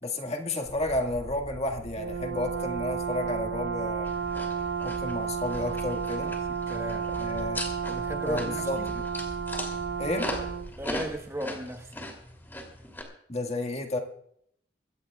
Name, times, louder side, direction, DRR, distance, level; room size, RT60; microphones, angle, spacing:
voice 1, 0.0-4.1 4.8-6.3 7.2-7.6 8.2-9.0 10.0-10.3 13.3-14.0, left 2 dB, 35° left, 3 dB, 1.8 m, -31 dB
sound 1, 0.7-11.2, equal, 55° right, 3.1 m, -44 dB
Brass instrument, 2.0-10.7, right 7 dB, 85° right, 1.1 m, -32 dB
sound 2, 4.0-13.0, left 1 dB, 10° left, 2.9 m, -39 dB
voice 2, 6.7-7.1 7.9-8.9 10.8-12.1, equal, 15° right, 3 dB, 1.2 m, -36 dB
23.0 x 17.0 x 2.4 m, 0.68 s
head